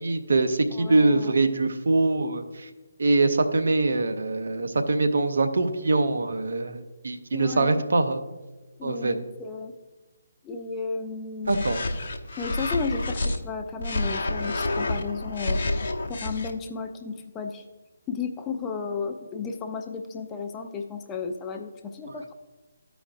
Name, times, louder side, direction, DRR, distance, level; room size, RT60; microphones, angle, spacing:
voice 1, 0.0-2.7 3.0-8.2 8.8-9.2 11.5-11.8, right 2 dB, 65° right, 8 dB, 0.6 m, -23 dB
voice 2, 0.7-1.4 7.3-7.8 8.8-9.7 10.4-11.7 12.4-15.6 16.1-17.6 18.1-22.3, left 5 dB, 15° left, 4 dB, 0.5 m, -33 dB
sound 1, 11.4-13.4 13.8-16.5, left 2 dB, 55° left, 0.8 m, -29 dB
13.5 x 5.0 x 2.5 m, 1.2 s
figure-of-eight pair, 145°, 0 cm